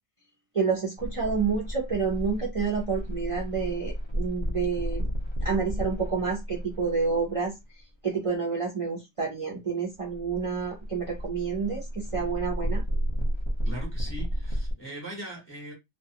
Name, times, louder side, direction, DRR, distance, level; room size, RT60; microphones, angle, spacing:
voice 1, 0.5-5.1 5.4-7.5 8.0-12.8, right 5 dB, 35° right, 0.5 m, -29 dB
sound 1, 1.0-7.6 9.9-14.7, equal, 50° left, 0.3 m, -32 dB
voice 2, 13.6-15.7, right 1 dB, 10° left, 0.8 m, -40 dB
2.4 x 2.4 x 2.8 m
omnidirectional pair, 1.5 m